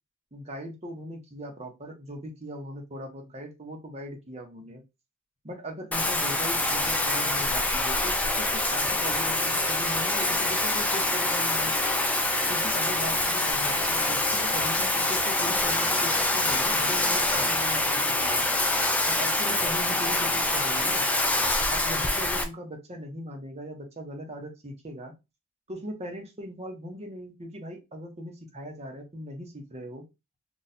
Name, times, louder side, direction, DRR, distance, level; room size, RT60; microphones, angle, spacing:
voice 1, 0.3-4.8 5.4-11.7 12.5-18.4 19.1-21.1 21.7-25.1 25.7-30.0, equal, 30° right, 3 dB, 0.8 m, -39 dB
Bathtub (filling or washing), 5.9-22.4, left 2 dB, 5° left, 0.3 m, -25 dB
2.7 x 2.3 x 4.0 m, 0.24 s
head